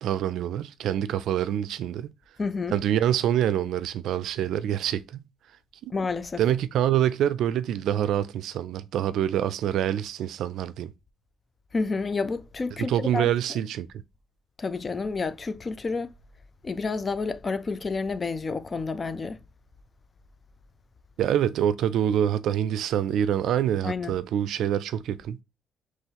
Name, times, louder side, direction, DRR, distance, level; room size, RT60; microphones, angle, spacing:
voice 1, 0.0-2.1 2.7-5.3 5.8-5.9 6.4-10.9 12.8-13.9 21.2-25.4, right 10 dB, 80° right, 0.4 m, -26 dB
voice 2, 2.4-2.7 5.9-6.4 11.7-13.6 14.6-16.1 16.6-19.4 23.8-24.2, left 4 dB, 35° left, 0.5 m, -30 dB
5.5 x 3.1 x 2.9 m
cardioid pair, 90°, 0 cm